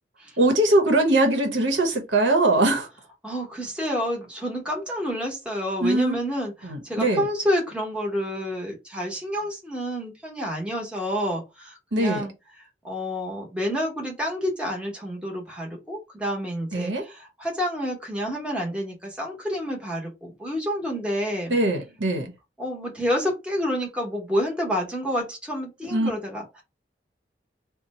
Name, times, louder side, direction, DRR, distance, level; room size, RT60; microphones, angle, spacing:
voice 1, 0.4-2.9 5.8-6.2 6.6-7.2 11.9-12.3 16.7-17.0 21.5-22.3 25.9-26.1, right 1 dB, 80° right, 0.9 m, -21 dB
voice 2, 3.2-12.3 12.6-21.6 22.6-26.6, equal, 5° right, 0.9 m, -29 dB
2.8 x 2.1 x 4.1 m
head